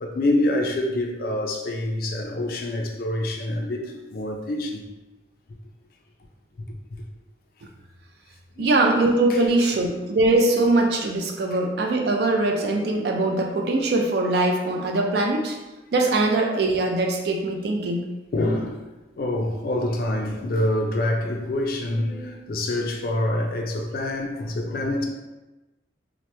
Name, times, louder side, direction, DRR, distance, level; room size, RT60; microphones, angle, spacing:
voice 1, 0.0-4.8 8.6-9.0 9.3-9.7 18.3-18.9 19.2-25.0, left 1 dB, 50° left, 2 dB, 0.3 m, -26 dB
voice 2, 8.6-15.6 15.9-18.1, right 2 dB, 55° right, 2 dB, 0.4 m, -22 dB
2.9 x 2.0 x 3.2 m, 1.1 s
head